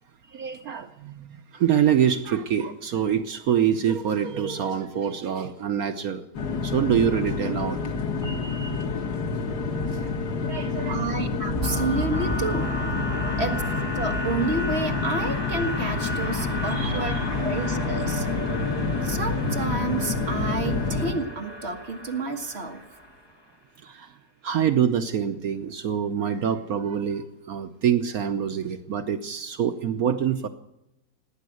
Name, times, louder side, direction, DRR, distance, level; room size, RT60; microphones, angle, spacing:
voice 1, 0.3-6.3 6.6-7.8 8.2-8.8 9.9-10.2 10.4-11.2 13.2-13.3 16.7-17.1 23.8-24.1 24.4-30.5, right 8 dB, 65° right, 9 dB, 1.3 m, -26 dB
sound 1, 6.3-21.1, left 4 dB, 80° left, 2.2 m, -28 dB
voice 2, 10.8-12.7 13.4-13.6 14.0-17.2 17.4-18.3 19.0-22.9, right 2 dB, 40° right, 5 dB, 1.9 m, -30 dB
sound 2, 11.5-23.3, equal, 15° left, 2.0 m, -33 dB
18.5 x 9.4 x 7.9 m, 0.85 s
omnidirectional pair, 1.7 m